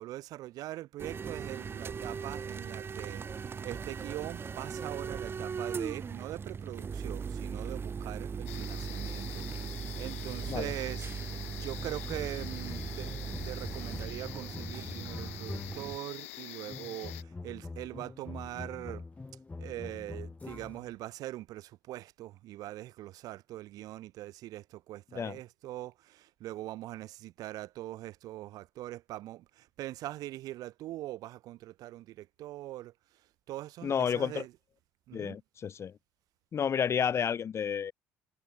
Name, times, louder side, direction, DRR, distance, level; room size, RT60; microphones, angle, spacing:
voice 1, 0.0-19.0 19.6-34.5 35.1-35.4, right 15 dB, 60° right, 2.8 m, -42 dB
sound 1, 1.0-16.0, right 6 dB, 35° right, 1.1 m, -39 dB
sound 2, 8.5-17.2, left 17 dB, 80° left, 3.9 m, -46 dB
sound 3, 11.8-16.0 16.7-20.9, left 3 dB, 20° left, 1.5 m, -44 dB
voice 2, 33.8-34.4 35.1-35.9 36.5-37.9, left 7 dB, 40° left, 0.9 m, -31 dB
hypercardioid pair, 60°, 7 cm